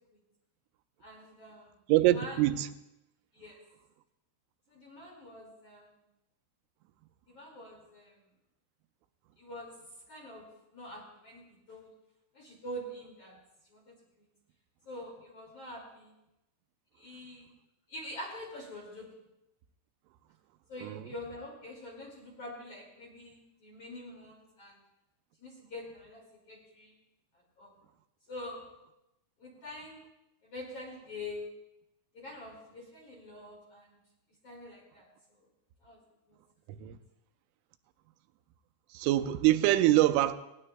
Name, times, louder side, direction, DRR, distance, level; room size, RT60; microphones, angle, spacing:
voice 1, 1.0-1.7 2.0-2.4 3.3-3.6 4.7-5.9 7.3-8.1 9.4-9.7 10.1-10.5 10.7-11.4 11.7-11.9 12.3-13.4 13.7-13.8 14.9-16.1 17.0-17.5 17.9-19.1 20.7-24.8 25.4-26.9 27.6-27.7 28.3-28.6 29.4-30.0 30.4-31.4 32.1-34.0 34.4-35.1 35.8-36.0 36.3-36.4, left 1 dB, 45° left, 2.3 m, -45 dB
voice 2, 1.9-2.7 20.8-21.0 36.8-37.0 38.9-40.3, right 15 dB, 85° right, 3.1 m, -24 dB
18.5 x 18.5 x 2.2 m
omnidirectional pair, 5.6 m